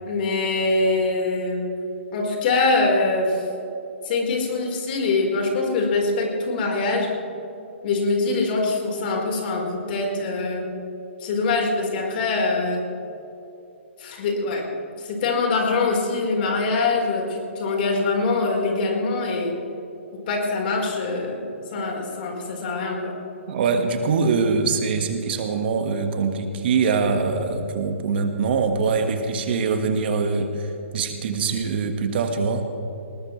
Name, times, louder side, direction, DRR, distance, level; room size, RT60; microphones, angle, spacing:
voice 1, 0.1-1.7 2.1-3.4 4.0-7.1 7.8-10.7 11.2-12.8 14.0-14.7 15.0-19.5 20.1-23.2, left 3 dB, 45° left, 1 dB, 4.2 m, -23 dB
voice 2, 23.5-32.7, right 5 dB, 50° right, 6 dB, 1.6 m, -23 dB
20.0 x 20.0 x 3.2 m, 2.8 s
figure-of-eight pair, 130°, 7 cm